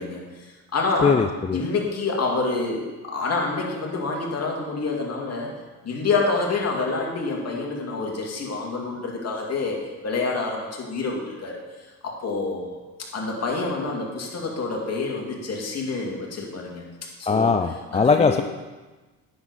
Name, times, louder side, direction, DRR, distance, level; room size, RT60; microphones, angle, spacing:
voice 1, 0.0-1.2 1.5-5.5 5.8-11.6 12.0-12.8 13.1-16.9 17.2-17.6 17.9-18.4, left 3 dB, 45° left, -2 dB, 2.5 m, -27 dB
voice 2, 1.0-1.6 17.3-18.4, left 5 dB, 20° left, 7 dB, 0.4 m, -20 dB
9.5 x 6.9 x 4.2 m, 1.2 s
supercardioid pair, 80°, 37 cm